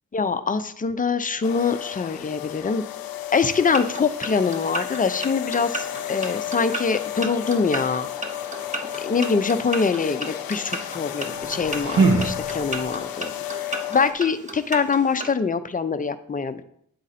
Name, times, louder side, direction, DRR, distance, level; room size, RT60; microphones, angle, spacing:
voice 1, 0.1-2.8 3.3-8.1 9.0-13.3 13.9-16.6, left 5 dB, 25° left, 10 dB, 0.5 m, -24 dB
sound 1, 1.4-14.1, left 12 dB, 85° left, 0.5 m, -33 dB
sound 2, 3.6-15.3, right 2 dB, 20° right, 0.9 m, -35 dB
sound 3, 11.3-13.0, right 4 dB, 75° right, 1.0 m, -23 dB
8.4 x 3.9 x 4.1 m, 0.68 s
cardioid pair, 85°, 34 cm